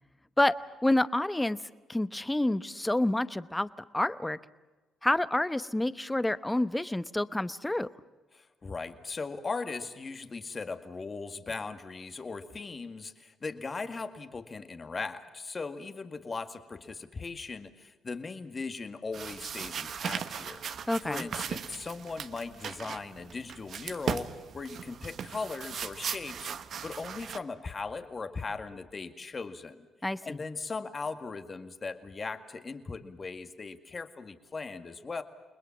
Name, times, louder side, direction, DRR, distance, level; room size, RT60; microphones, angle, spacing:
voice 1, 0.8-1.6 1.9-4.4 5.0-7.9 20.9-21.3 30.0-30.2, left 1 dB, 10° left, 14 dB, 0.9 m, -28 dB
voice 2, 8.3-26.5 26.8-29.9 30.2-35.2, left 4 dB, 35° left, 8 dB, 2.0 m, -38 dB
sound 1, 19.1-27.4, right 7 dB, 60° right, 1.2 m, -38 dB
29.5 x 20.5 x 7.3 m, 1.2 s
cardioid pair, 90°, 0 cm